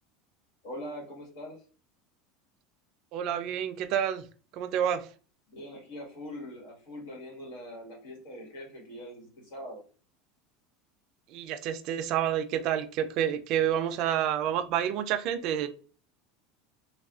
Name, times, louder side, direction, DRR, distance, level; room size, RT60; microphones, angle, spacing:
voice 1, 0.6-1.6 5.5-9.8, equal, 80° left, 1.5 m, -42 dB
voice 2, 3.1-4.2 4.5-5.1 11.3-15.7, right 10 dB, 50° right, 0.4 m, -29 dB
3.3 x 2.4 x 2.4 m
supercardioid pair, 150°, 0 cm